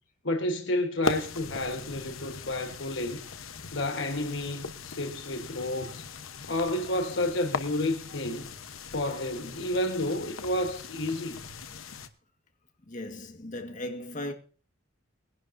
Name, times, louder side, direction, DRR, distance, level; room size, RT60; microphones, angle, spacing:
voice 1, 0.2-3.2 3.7-6.1 6.5-8.5 8.9-11.4, left 1 dB, 60° left, 1.3 m, -30 dB
sound 1, 1.0-12.1, left 4 dB, 80° left, 1.0 m, -39 dB
voice 2, 12.8-14.3, left 1 dB, 40° left, 1.7 m, -37 dB
21.5 x 11.0 x 2.6 m
head